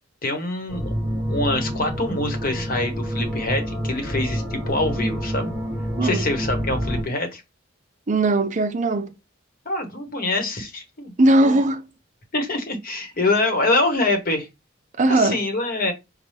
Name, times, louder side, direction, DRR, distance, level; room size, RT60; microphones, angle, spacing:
voice 1, 0.2-0.9 1.3-5.5 6.0-7.4 9.6-11.1 11.4-11.6 12.3-14.5 15.1-15.9, left 2 dB, 45° left, 1.1 m, -25 dB
sound 1, 0.7-7.0, equal, 10° right, 1.1 m, -27 dB
voice 2, 8.1-9.1 11.2-11.8 15.0-15.4, right 2 dB, 35° right, 0.5 m, -19 dB
5.5 x 2.2 x 3.2 m
head